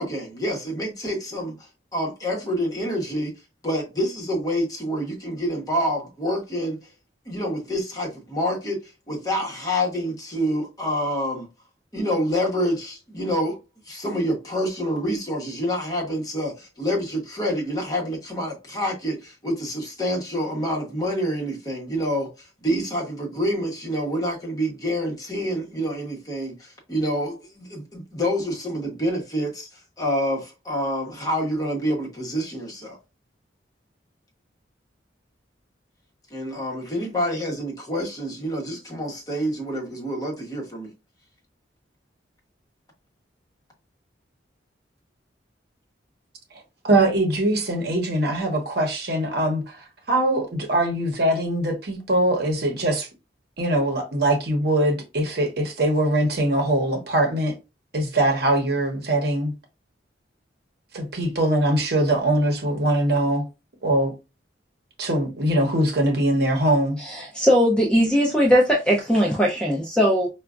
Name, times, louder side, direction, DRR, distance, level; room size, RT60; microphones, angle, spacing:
voice 1, 0.0-1.5 1.9-3.3 3.6-6.8 7.3-11.5 11.9-13.6 13.8-33.0 36.3-40.9, equal, 20° left, 1.1 m, -27 dB
voice 2, 46.8-53.1 53.6-57.5 57.9-59.5 60.9-63.4 63.8-64.1 65.0-67.0, right 1 dB, 60° right, 0.9 m, -22 dB
voice 3, 67.0-70.3, equal, 5° left, 0.5 m, -19 dB
4.8 x 2.2 x 2.4 m
head